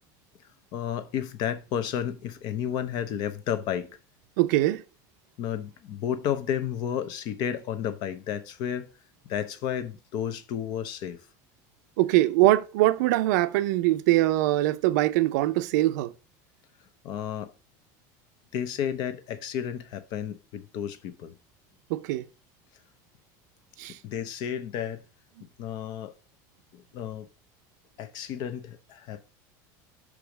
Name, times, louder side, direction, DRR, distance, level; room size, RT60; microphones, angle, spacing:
voice 1, 0.7-4.0 5.4-8.9 9.2-11.2 17.0-17.5 18.5-21.4 24.0-25.1 25.6-26.2 26.7-27.3 28.0-29.3, left 9 dB, 50° left, 0.8 m, -32 dB
voice 2, 4.4-4.8 12.0-16.1 21.9-22.2 23.8-24.0, right 16 dB, 85° right, 0.6 m, -22 dB
6.0 x 4.9 x 5.0 m
cardioid pair, 155°, 9 cm